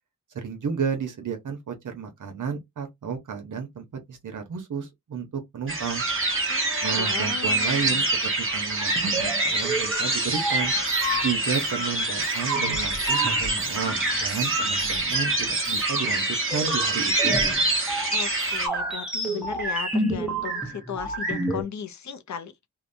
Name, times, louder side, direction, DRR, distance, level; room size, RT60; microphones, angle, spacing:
voice 1, 0.3-6.0 6.8-8.1 8.5-10.7 11.1-17.6, right 6 dB, 75° right, 0.9 m, -32 dB
sound 1, 5.7-18.7, right 3 dB, 40° right, 0.9 m, -26 dB
voice 2, 6.5-8.1 18.1-22.5, left 7 dB, 65° left, 0.5 m, -36 dB
sound 2, 8.8-21.6, right 1 dB, ahead, 0.8 m, -30 dB
2.8 x 2.1 x 2.5 m
wide cardioid pair, 100°, 31 cm